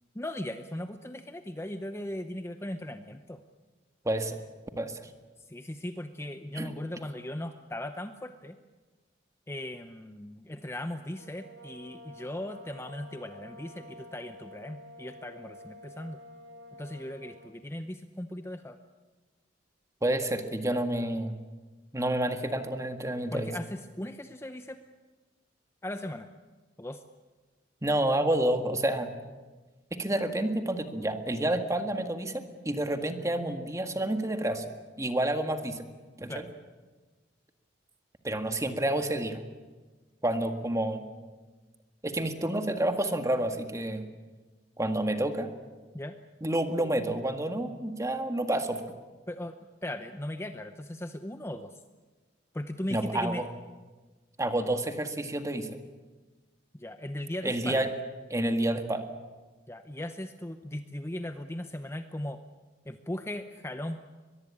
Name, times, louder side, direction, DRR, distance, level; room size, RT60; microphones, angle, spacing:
voice 1, 0.1-3.4 5.5-8.6 9.5-16.2 16.7-18.8 23.3-24.8 25.8-26.3 26.8-27.0 36.3-36.4 45.9-46.2 49.3-49.5 49.8-51.8 52.5-53.5 56.7-57.9 59.7-62.4 62.9-64.0, left 1 dB, 15° left, 8 dB, 0.8 m, -38 dB
voice 2, 4.1-4.4 4.8-5.0 6.5-6.7 20.0-21.4 21.9-23.5 27.8-29.1 29.9-34.6 35.0-35.9 36.2-36.4 38.2-39.4 40.2-41.0 42.0-44.0 44.8-45.5 46.4-48.8 52.9-53.4 54.4-55.8 57.4-57.9 58.3-59.0, right 1 dB, 15° right, 7 dB, 1.8 m, -29 dB
sound 1, 11.0-17.6, equal, 85° right, 2.9 m, -50 dB
23.0 x 22.0 x 8.7 m, 1.3 s
head